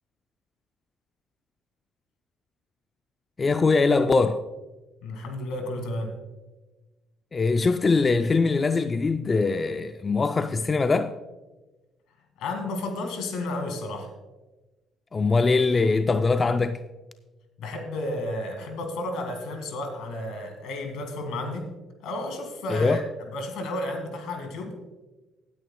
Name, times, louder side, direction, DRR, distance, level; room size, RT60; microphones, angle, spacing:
voice 1, 3.4-4.4 7.3-11.2 15.1-16.8 22.7-23.0, left 4 dB, 30° left, 0.4 m, -22 dB
voice 2, 5.0-6.2 12.4-14.1 17.6-21.7 22.0-23.0 23.3-24.8, left 1 dB, 80° left, 1.9 m, -32 dB
17.0 x 9.4 x 2.2 m
supercardioid pair, 75°, 0 cm